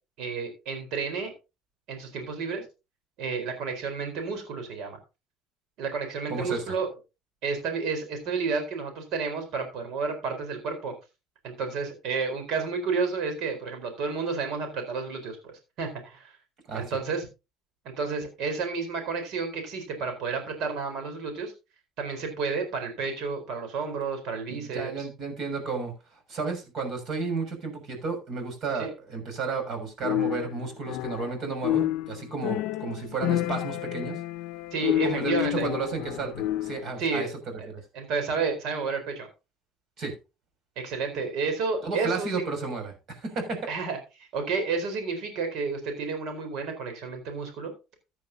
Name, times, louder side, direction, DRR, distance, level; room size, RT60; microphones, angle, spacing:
voice 1, 0.2-1.3 1.9-2.6 3.2-5.0 5.8-6.9 7.4-10.9 11.4-16.3 16.7-17.3 17.8-21.5 22.0-25.1 28.8-28.9 34.7-35.7 37.0-37.3 37.6-37.7 37.9-39.3 40.8-42.5 43.7-47.7, right 4 dB, 70° right, 4.3 m, -31 dB
voice 2, 6.3-6.7 16.7-17.0 24.5-25.9 26.3-34.2 35.0-36.3 36.6-37.3 40.0-40.1 41.8-43.7, right 4 dB, 50° right, 6.4 m, -32 dB
sound 1, 30.0-31.4 31.6-36.9, left 14 dB, 75° left, 0.5 m, -29 dB
15.0 x 9.7 x 2.8 m
cardioid pair, 110°, 0 cm